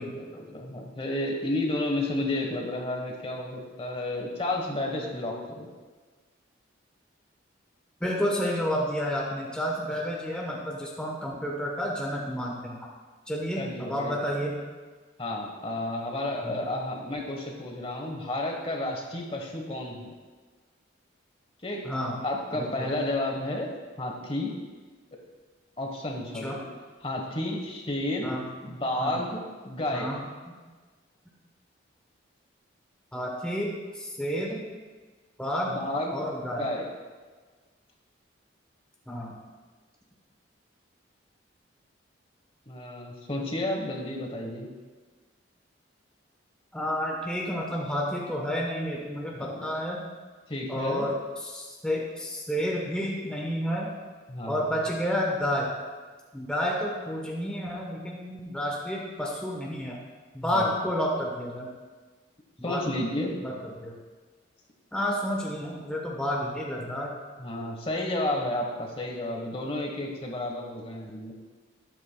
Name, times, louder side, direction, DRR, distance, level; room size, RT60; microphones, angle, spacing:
voice 1, 0.0-5.7 13.6-14.2 15.2-20.1 21.6-21.8 22.2-23.7 24.0-24.5 25.8-26.6 27.0-28.3 28.6-30.1 35.7-36.1 36.5-36.9 42.7-44.7 49.3-49.6 50.5-51.1 54.3-54.7 60.4-60.7 62.6-63.4 67.4-71.3, left 1 dB, 30° left, 1 dB, 1.1 m, -31 dB
voice 2, 8.0-12.9 13.3-14.6 16.4-16.6 21.8-22.2 22.6-22.9 26.4-26.6 28.2-29.2 29.9-30.2 33.1-34.6 35.4-35.8 36.1-36.6 39.1-39.3 46.7-50.0 50.7-51.1 51.4-53.9 54.5-55.7 56.3-60.0 60.3-61.7 62.6-63.0 63.4-64.0 64.9-67.2, equal, 5° left, -3 dB, 1.0 m, -30 dB
13.0 x 9.9 x 2.2 m, 1.4 s
head